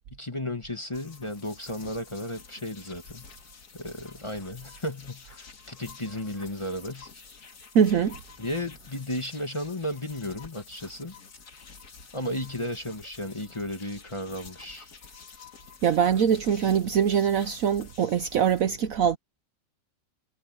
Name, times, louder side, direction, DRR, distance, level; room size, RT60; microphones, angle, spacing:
voice 1, 0.1-3.2 3.7-7.1 8.4-11.2 12.1-14.9, left 1 dB, 20° left, 1.4 m, -34 dB
sound 1, 0.9-18.6, left 5 dB, 65° left, 2.6 m, -49 dB
voice 2, 7.7-8.2 15.8-19.2, right 8 dB, 60° right, 1.0 m, -23 dB
omnidirectional pair, 1.8 m